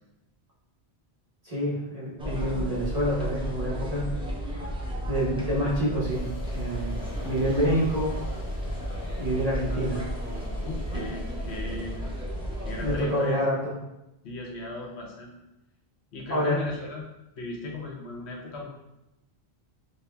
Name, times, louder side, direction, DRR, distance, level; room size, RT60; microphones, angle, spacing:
voice 1, 1.4-4.1 5.0-8.1 9.2-10.1 10.9-11.0 12.8-13.6 16.3-16.6, equal, 40° right, -6 dB, 1.0 m, -27 dB
sound 1, 2.2-13.0, equal, 5° right, 0.5 m, -33 dB
sound 2, 6.1-13.3, equal, 40° left, 0.6 m, -46 dB
voice 2, 10.6-12.0 12.6-13.4 14.2-15.3 16.1-17.1 17.3-18.7, left 2 dB, 85° left, -1 dB, 1.0 m, -37 dB
5.3 x 2.3 x 2.2 m, 0.92 s
omnidirectional pair, 1.1 m